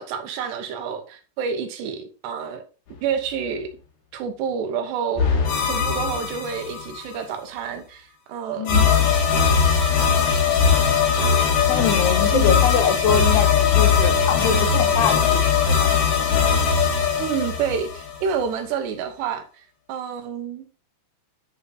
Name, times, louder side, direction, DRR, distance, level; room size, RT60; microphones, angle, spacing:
voice 1, 0.0-2.6 3.0-3.7 4.1-5.4 5.7-8.7 12.3-12.6 17.2-19.5 19.9-20.7, right 7 dB, 85° right, 3.5 m, -28 dB
sound 1, 5.2-7.0 8.7-18.4, left 6 dB, 55° left, 3.2 m, -20 dB
voice 2, 8.6-8.9 11.7-15.9, left 8 dB, 85° left, 3.2 m, -24 dB
10.5 x 5.5 x 4.2 m
omnidirectional pair, 4.7 m